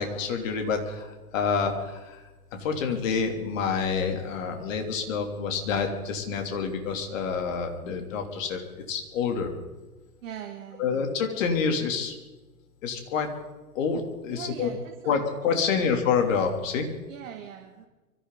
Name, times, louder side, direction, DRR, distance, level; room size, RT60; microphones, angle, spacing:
voice 1, 0.0-2.2 2.6-8.6 8.9-9.5 10.8-12.1 12.8-13.3 13.7-14.7 15.0-16.9, left 5 dB, 55° left, 4 dB, 3.2 m, -27 dB
voice 2, 10.2-11.1 14.3-15.1 15.7-16.0 17.1-17.9, right 9 dB, 55° right, 4 dB, 2.1 m, -41 dB
24.0 x 14.5 x 4.0 m, 1.2 s
figure-of-eight pair, 110°, 47 cm